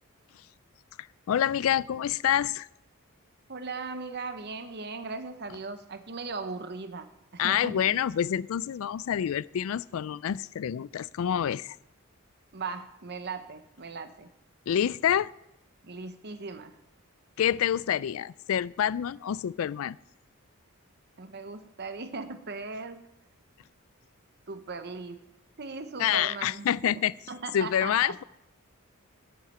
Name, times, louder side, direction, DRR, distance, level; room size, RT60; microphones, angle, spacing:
voice 1, 1.0-2.7 7.4-11.8 14.7-15.3 17.4-20.0 26.0-27.1 27.5-28.2, left 9 dB, 70° left, 21 dB, 0.3 m, -27 dB
voice 2, 3.5-7.9 12.5-14.3 15.8-16.8 21.2-23.1 24.5-25.2 25.6-26.7 27.3-28.2, right 4 dB, 50° right, 10 dB, 0.9 m, -38 dB
9.6 x 7.3 x 7.8 m, 0.84 s
head